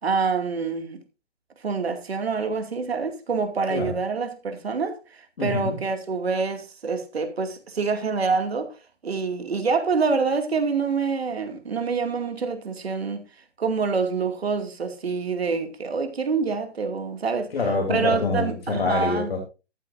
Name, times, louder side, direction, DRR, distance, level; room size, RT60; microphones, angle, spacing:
voice 1, 0.0-1.0 1.6-8.7 9.0-13.2 13.6-17.5 17.9-19.3, right 5 dB, 60° right, 2.5 m, -26 dB
voice 2, 5.4-5.8 17.5-19.4, left 3 dB, 60° left, 3.4 m, -26 dB
13.5 x 12.5 x 2.7 m
hypercardioid pair, 160°, 35 cm